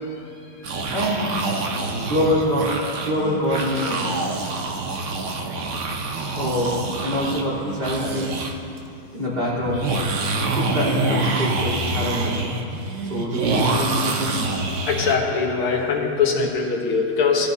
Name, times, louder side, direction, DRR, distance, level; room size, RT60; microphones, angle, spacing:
sound 1, 0.6-8.5 8.8-8.9 9.7-15.1, right 3 dB, 70° right, 0.7 m, -26 dB
voice 1, 0.9-1.3 1.7-2.7 3.0-4.1 6.3-6.8 7.0-8.3 9.1-9.9 10.5-12.5 13.1-14.5, equal, 25° right, -8 dB, 3.6 m, -25 dB
voice 2, 14.9-17.5, left 5 dB, 75° left, -2 dB, 2.2 m, -22 dB
18.5 x 11.5 x 2.7 m, 2.7 s
omnidirectional pair, 2.4 m